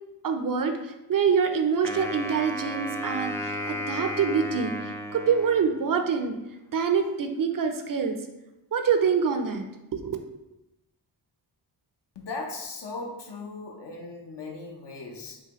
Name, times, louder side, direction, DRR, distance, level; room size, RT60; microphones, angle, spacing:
voice 1, 0.2-4.7 5.1-6.4 6.7-8.2 8.7-9.6 9.9-10.2, right 6 dB, 50° right, 6 dB, 0.5 m, -25 dB
Wind instrument woodwind instrument, 1.8-6.1, equal, 5° left, 0.3 m, -34 dB
voice 2, 12.1-15.4, left 3 dB, 70° left, 1 dB, 0.9 m, -38 dB
5.6 x 2.2 x 3.0 m, 0.94 s
cardioid pair, 80°, 43 cm